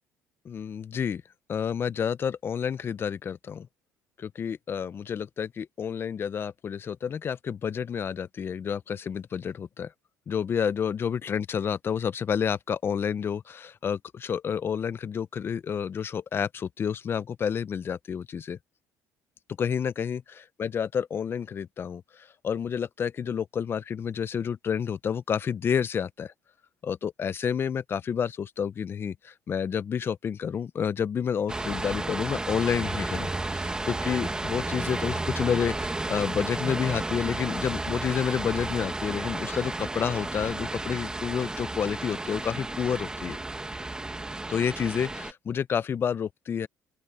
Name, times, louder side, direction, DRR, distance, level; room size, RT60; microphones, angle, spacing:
voice 1, 0.4-1.2 1.5-3.7 4.2-9.9 10.3-18.6 19.6-26.3 26.8-43.4 44.5-46.7, left 7 dB, 40° left, 0.8 m, -30 dB
sound 1, 31.5-45.3, right 2 dB, 15° right, 2.0 m, -32 dB
open air
cardioid pair, 100°, 6 cm